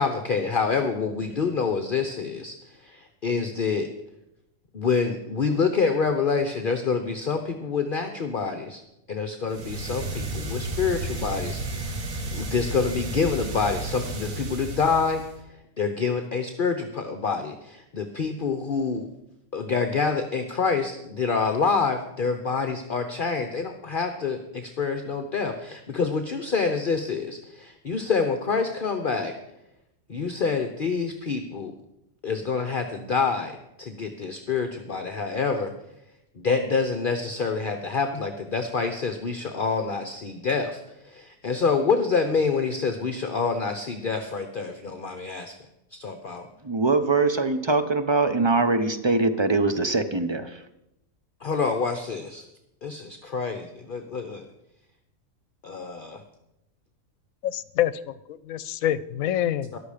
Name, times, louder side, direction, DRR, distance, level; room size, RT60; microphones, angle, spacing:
voice 1, 0.0-3.9 4.7-8.8 9.1-15.2 15.8-19.1 19.5-29.3 30.1-31.7 32.2-35.7 36.4-45.6 45.9-46.4 51.4-52.5 52.8-54.4 55.6-56.2 59.7-59.8, left 5 dB, 45° left, 7 dB, 1.0 m, -27 dB
sound 1, 9.5-15.4, right 2 dB, 75° right, 1.9 m, -32 dB
voice 2, 46.6-50.6, right 3 dB, 25° right, 10 dB, 0.7 m, -22 dB
voice 3, 57.4-59.7, left 11 dB, 80° left, 17 dB, 1.1 m, -26 dB
14.0 x 11.5 x 5.1 m, 0.86 s
omnidirectional pair, 1.4 m